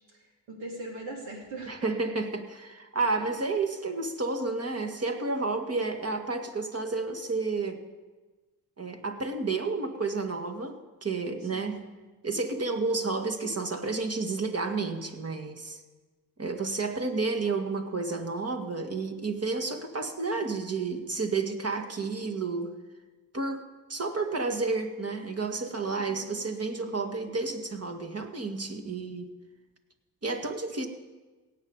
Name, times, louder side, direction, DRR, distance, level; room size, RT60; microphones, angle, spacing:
voice 1, 0.1-1.9 3.2-3.4 11.4-11.9 26.1-26.4, right 2 dB, 75° right, -1 dB, 3.5 m, -41 dB
voice 2, 1.7-7.8 8.8-11.8 12.2-15.8 16.4-22.7 23.3-23.6 23.9-29.3 30.2-30.9, right 3 dB, 30° right, 5 dB, 2.0 m, -31 dB
17.5 x 8.3 x 5.2 m, 1.2 s
hypercardioid pair, 45°, 47 cm